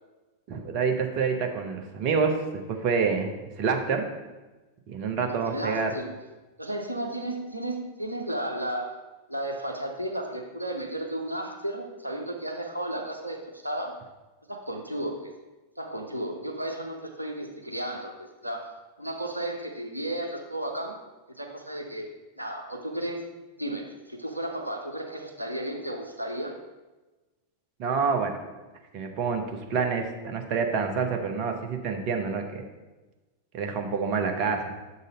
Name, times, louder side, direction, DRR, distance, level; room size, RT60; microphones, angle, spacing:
voice 1, 0.5-2.4 2.7-3.3 3.6-4.1 4.9-5.9 27.8-28.4 28.9-32.6 33.5-34.7, right 5 dB, 40° right, 4 dB, 0.8 m, -27 dB
voice 2, 5.2-6.1 6.6-9.0 9.3-14.0 14.5-15.3 15.8-21.0 21.4-22.1 22.4-23.3 23.6-26.6, right 1 dB, 85° right, 2 dB, 0.6 m, -34 dB
6.5 x 4.0 x 5.0 m, 1.2 s
figure-of-eight pair, 90°, 0 cm